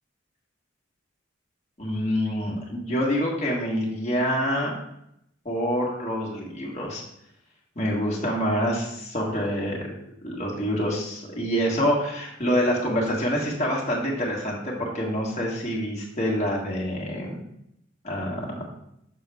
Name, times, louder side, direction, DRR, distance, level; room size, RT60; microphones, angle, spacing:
voice 1, 1.8-4.7 5.4-7.0 7.7-9.8 10.2-17.4 18.0-18.7, equal, 35° left, -3 dB, 1.6 m, -26 dB
6.4 x 6.0 x 3.5 m, 0.76 s
head